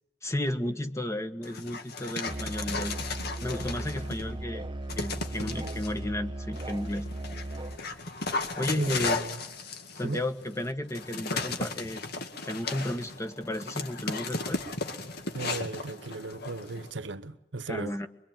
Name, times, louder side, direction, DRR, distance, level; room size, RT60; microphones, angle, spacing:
voice 1, 0.2-3.0 3.4-4.7 5.0-7.1 8.5-9.2 9.9-12.0 12.4-14.6 17.7-18.1, left 1 dB, 15° left, 1.4 m, -33 dB
Dog, 1.4-4.3 4.9-5.9 6.5-16.9, left 3 dB, 60° left, 2.1 m, -35 dB
Musical instrument, 2.3-7.8, right 1 dB, 25° right, 1.0 m, -37 dB
sound 1, 2.9-16.3, left 1 dB, 80° left, 7.7 m, -53 dB
voice 2, 5.4-5.8 8.8-9.4 10.0-10.2 15.3-18.0, right 2 dB, 70° right, 1.0 m, -36 dB
24.0 x 23.5 x 9.2 m
head